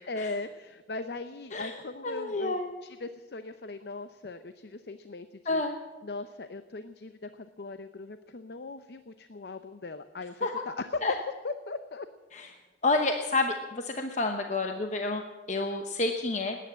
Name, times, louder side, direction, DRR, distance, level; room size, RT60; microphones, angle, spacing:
voice 1, 0.1-5.6 6.0-11.0 11.4-12.1, left 3 dB, 65° left, 10 dB, 0.6 m, -39 dB
voice 2, 2.0-2.7 5.5-5.8 10.4-10.6 11.0-11.1 12.3-12.5 12.8-15.2 15.5-16.6, left 3 dB, 40° left, 4 dB, 1.0 m, -29 dB
20.0 x 9.4 x 7.4 m, 1.3 s
head